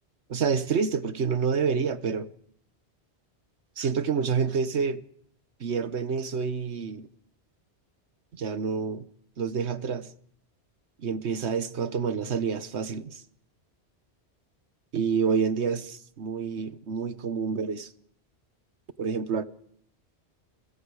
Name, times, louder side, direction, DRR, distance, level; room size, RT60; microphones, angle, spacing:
voice 1, 0.3-2.3 3.8-5.0 5.6-7.1 8.4-9.1 9.4-10.1 11.0-13.2 14.9-17.9 19.0-19.4, right 6 dB, 80° right, 1.4 m, -28 dB
29.0 x 23.5 x 4.9 m
omnidirectional pair, 1.1 m